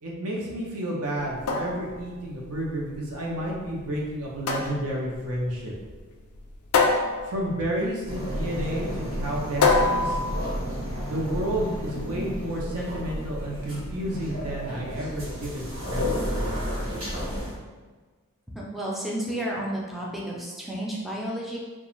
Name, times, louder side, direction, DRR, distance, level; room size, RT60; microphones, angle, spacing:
voice 1, 0.0-5.7 7.2-10.2 11.0-16.6, right 1 dB, 85° right, -3 dB, 0.7 m, -31 dB
sound 1, 1.2-11.2, left 4 dB, 70° left, 0.4 m, -28 dB
sound 2, 8.1-17.5, left 1 dB, 70° right, 1.0 m, -31 dB
voice 2, 18.6-21.6, right 1 dB, ahead, -5 dB, 0.3 m, -31 dB
2.4 x 2.2 x 3.0 m, 1.3 s
head